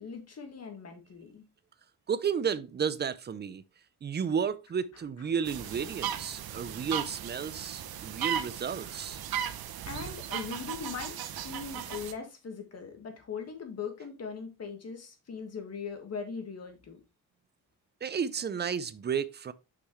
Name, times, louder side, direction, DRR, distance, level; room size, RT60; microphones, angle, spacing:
voice 1, 0.0-1.4 9.9-17.0, left 6 dB, 45° left, 1.7 m, -40 dB
voice 2, 2.1-3.6 4.0-9.2 18.0-19.5, right 7 dB, 30° right, 0.5 m, -32 dB
sound 1, 5.5-12.1, right 9 dB, 90° right, 0.8 m, -36 dB
6.1 x 5.9 x 3.1 m
wide cardioid pair, 140°, 35 cm